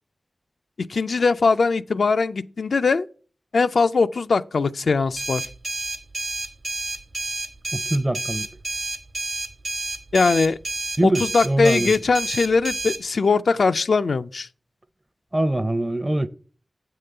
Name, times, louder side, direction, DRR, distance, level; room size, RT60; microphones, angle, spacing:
voice 1, 0.9-3.1 3.5-5.5 10.1-10.6 11.0-14.5, left 4 dB, 80° left, 0.3 m, -20 dB
sound 1, 5.2-13.0, right 3 dB, 60° right, 1.1 m, -30 dB
voice 2, 7.7-8.5 11.0-11.9 15.3-16.3, right 1 dB, 25° right, 0.5 m, -23 dB
7.7 x 3.7 x 6.6 m
wide cardioid pair, 55°, 0 cm